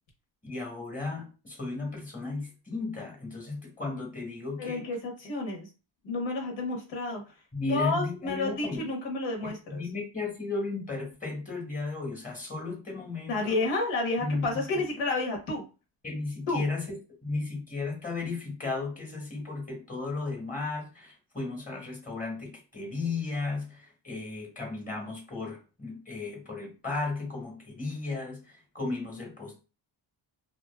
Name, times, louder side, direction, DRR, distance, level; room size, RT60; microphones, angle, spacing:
voice 1, 0.4-4.8 7.5-8.9 9.4-13.6 14.2-14.8 16.0-29.6, left 3 dB, 20° left, 0 dB, 1.0 m, -35 dB
voice 2, 4.6-5.7 6.0-7.2 7.7-9.8 13.3-15.6 16.5-16.6, left 2 dB, 80° left, 0 dB, 1.1 m, -30 dB
2.6 x 2.4 x 2.3 m, 0.32 s
cardioid pair, 100°, 45 cm